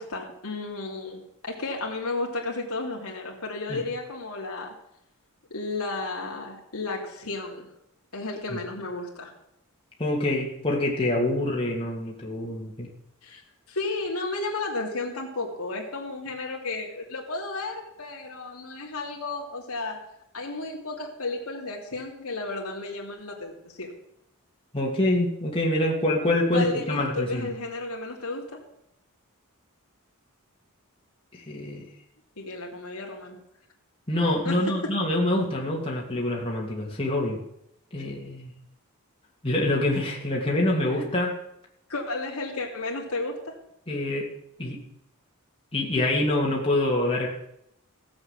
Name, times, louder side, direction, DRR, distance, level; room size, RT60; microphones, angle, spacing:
voice 1, 0.0-4.8 5.5-7.7 8.1-9.3 13.2-13.4 13.7-20.0 20.3-23.9 26.5-28.6 32.4-33.4 34.4-35.0 41.0-41.1 41.9-43.5, left 3 dB, 85° left, -1 dB, 3.0 m, -33 dB
voice 2, 10.0-12.9 24.7-27.5 31.3-31.9 34.1-37.4 37.9-38.5 39.4-41.4 43.9-44.3 44.6-44.8 45.7-47.3, left 1 dB, 25° left, -3 dB, 2.7 m, -26 dB
15.5 x 7.9 x 7.7 m, 0.77 s
head